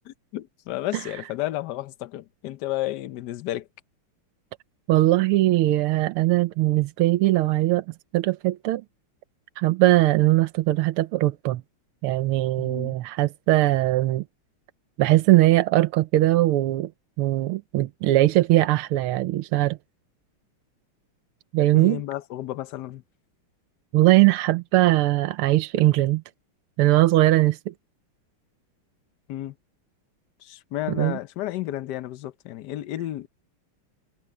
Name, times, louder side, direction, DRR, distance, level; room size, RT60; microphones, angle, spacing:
voice 1, 0.3-3.7 12.6-13.0 21.7-23.0 29.3-29.5 30.4-33.3, left 14 dB, 65° left, 1.1 m, -32 dB
voice 2, 4.9-7.8 8.1-8.8 9.6-11.6 12.0-14.2 15.0-16.9 17.2-19.8 21.5-22.0 23.9-26.2 26.8-27.7 31.0-31.2, right 16 dB, 85° right, 1.7 m, -20 dB
omnidirectional pair, 2.3 m